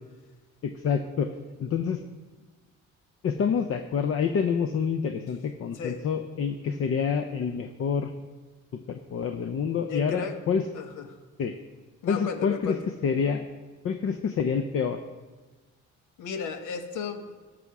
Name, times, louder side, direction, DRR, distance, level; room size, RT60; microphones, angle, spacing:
voice 1, 0.6-1.3 1.6-2.0 3.2-8.1 8.9-10.7 11.4-11.5 12.1-12.8 13.0-13.4 13.8-15.0, left 6 dB, 50° left, 7 dB, 0.6 m, -27 dB
voice 2, 5.7-6.1 9.8-10.4 10.7-11.2 12.0-12.9 16.2-17.3, left 5 dB, 80° left, 7 dB, 1.0 m, -34 dB
11.0 x 6.2 x 4.8 m, 1.3 s
cardioid pair, 90°, 30 cm